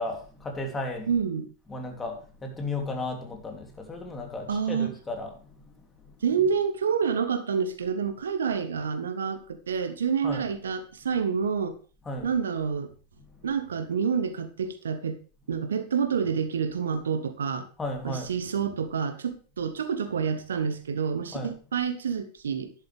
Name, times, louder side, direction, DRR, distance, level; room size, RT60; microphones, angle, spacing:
voice 1, 0.0-1.1 1.7-5.7 6.0-6.1 10.2-10.5 12.0-12.3 13.3-13.4 17.8-18.3 21.3-21.5, left 2 dB, 15° left, 2 dB, 3.0 m, -34 dB
voice 2, 1.1-1.5 4.5-5.0 6.2-11.8 12.2-12.9 13.4-15.2 15.5-17.7 18.0-22.7, right 6 dB, 65° right, 11 dB, 1.1 m, -28 dB
12.0 x 11.0 x 3.5 m, 0.37 s
figure-of-eight pair, 90°, 0 cm